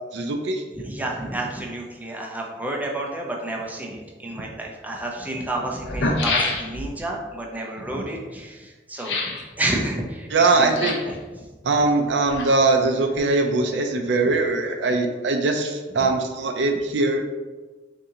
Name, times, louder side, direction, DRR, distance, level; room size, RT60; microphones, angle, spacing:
voice 1, 0.1-0.6 10.3-10.9 11.6-17.3, right 3 dB, 80° right, 4 dB, 0.5 m, -21 dB
voice 2, 0.7-11.5 14.2-14.3 16.0-16.1, right 1 dB, 10° right, -1 dB, 0.5 m, -30 dB
sound 1, 4.5-4.6 5.4-5.5 5.8-7.0 9.0-9.5 10.6-11.2 12.0-12.8 13.1-13.2, left 2 dB, 85° left, 0.7 m, -27 dB
4.2 x 2.7 x 3.7 m, 1.3 s
head